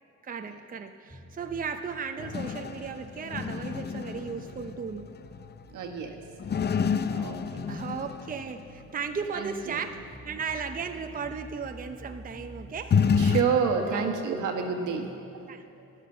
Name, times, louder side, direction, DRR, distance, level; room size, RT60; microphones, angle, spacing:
voice 1, 0.2-5.1 7.7-13.0 13.9-14.0 15.5-15.6, right 6 dB, 30° right, 7 dB, 0.7 m, -36 dB
sound 1, 1.1-13.0, equal, 5° right, 2.8 m, -50 dB
sound 2, 2.2-5.4 6.4-8.6 12.9-13.4, left 6 dB, 35° left, 0.6 m, -28 dB
voice 2, 5.7-6.2 7.1-7.4 9.3-9.8 13.2-15.4 15.8-15.9, right 6 dB, 80° right, 2 dB, 1.6 m, -29 dB
12.5 x 10.5 x 6.8 m, 2.6 s
cardioid pair, 90°, 30 cm